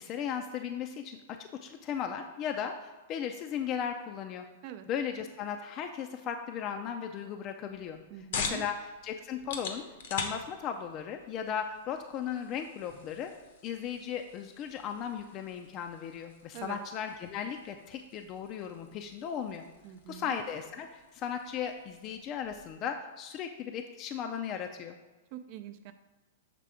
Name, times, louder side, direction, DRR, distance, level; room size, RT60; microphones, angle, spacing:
voice 1, 0.0-4.4 4.9-8.0 8.3-9.8 10.1-13.3 13.6-19.6 20.1-25.0, left 8 dB, 40° left, 5 dB, 0.4 m, -36 dB
sound 1, 7.7-22.8, left 5 dB, 70° left, 0.8 m, -44 dB
voice 2, 8.1-8.6 16.5-16.8 19.8-20.4 25.3-25.9, right 11 dB, 50° right, 9 dB, 0.5 m, -44 dB
6.7 x 3.3 x 4.9 m, 1.2 s
hypercardioid pair, 120°, 0 cm